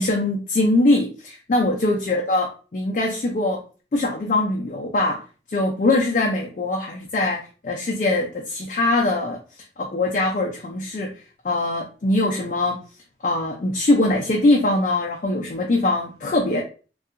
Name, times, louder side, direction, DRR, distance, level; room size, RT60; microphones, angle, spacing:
voice 1, 0.0-3.6 3.9-5.2 5.5-9.4 9.8-11.1 11.4-12.8 13.2-16.6, left 2 dB, 45° left, -1 dB, 0.4 m, -22 dB
2.7 x 2.3 x 2.4 m, 0.36 s
head